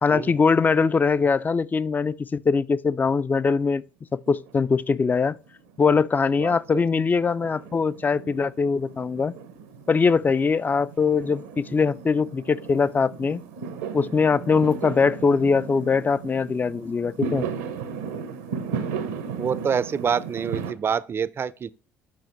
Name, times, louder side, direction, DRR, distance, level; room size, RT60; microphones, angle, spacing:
voice 1, 0.0-3.8 4.1-5.4 5.8-9.3 9.9-13.4 13.9-17.5, left 5 dB, 25° left, 0.4 m, -22 dB
Fireworks, 4.3-5.2 5.5-20.7, right 6 dB, 90° right, 0.9 m, -36 dB
voice 2, 6.4-6.8 19.4-21.7, right 7 dB, 40° right, 0.4 m, -27 dB
7.1 x 5.6 x 3.1 m
hypercardioid pair, 65°, 7 cm